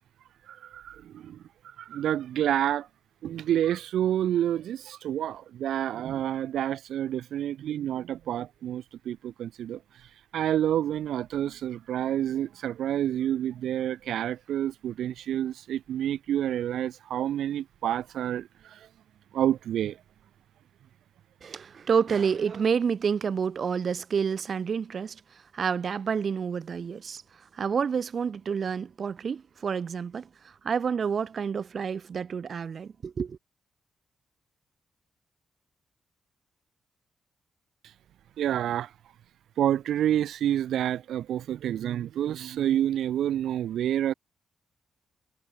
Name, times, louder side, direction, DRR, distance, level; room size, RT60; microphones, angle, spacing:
voice 1, 0.7-1.4 1.9-2.9 3.2-9.8 10.3-18.4 19.3-19.9 38.4-38.9 39.6-44.1, right 11 dB, 90° right, 6.5 m, -28 dB
voice 2, 21.4-25.2 25.5-27.2 27.5-33.4, right 6 dB, 40° right, 7.5 m, -29 dB
wide cardioid pair, 175°, 0 cm